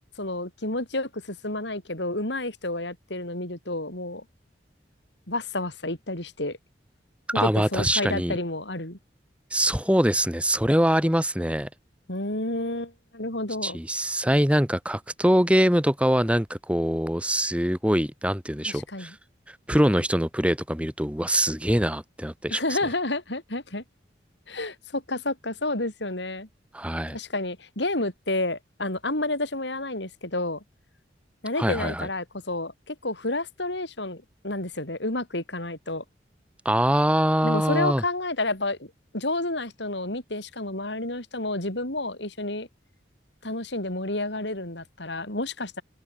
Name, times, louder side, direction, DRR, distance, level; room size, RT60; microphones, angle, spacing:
voice 1, 0.2-4.2 5.3-6.6 7.3-9.0 12.1-13.8 18.7-19.1 22.5-23.8 24.5-26.5 27.1-30.6 31.4-36.0 37.4-42.7 43.4-45.8, left 2 dB, 75° left, 5.8 m, -30 dB
voice 2, 7.3-8.4 9.5-11.7 13.6-19.1 19.7-22.6 26.7-27.2 31.6-32.1 36.6-38.0, equal, 5° right, 4.4 m, -23 dB
open air
head